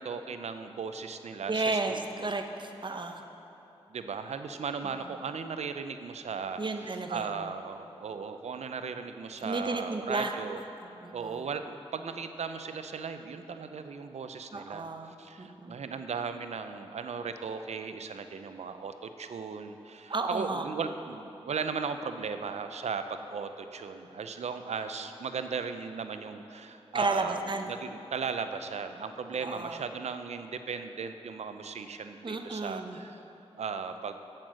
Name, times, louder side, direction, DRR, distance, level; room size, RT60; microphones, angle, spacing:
voice 1, 0.0-2.3 3.9-10.6 11.1-14.9 15.2-33.2 33.6-34.2, right 5 dB, 85° right, 8 dB, 0.5 m, -37 dB
voice 2, 1.5-3.2 4.8-4.9 6.6-7.5 9.4-10.3 10.8-11.4 14.5-15.8 20.1-20.6 26.9-27.7 29.4-29.8 32.2-33.0, right 3 dB, 45° right, 5 dB, 0.8 m, -33 dB
8.6 x 7.9 x 6.2 m, 2.9 s
cardioid pair, 50°, 11 cm